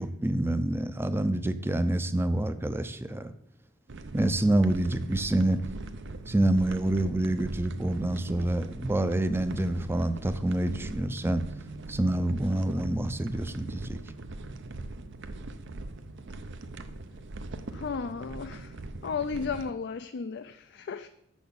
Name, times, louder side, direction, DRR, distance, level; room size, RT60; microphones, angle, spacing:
voice 1, 0.0-3.3 4.1-5.6 6.3-11.4 11.9-14.0, right 1 dB, 10° right, 11 dB, 0.5 m, -27 dB
sound 1, 3.9-19.7, right 2 dB, 60° right, 0.7 m, -41 dB
voice 2, 17.7-18.8 19.0-21.1, left 5 dB, 55° left, 10 dB, 0.4 m, -34 dB
6.9 x 6.3 x 7.0 m, 0.77 s
head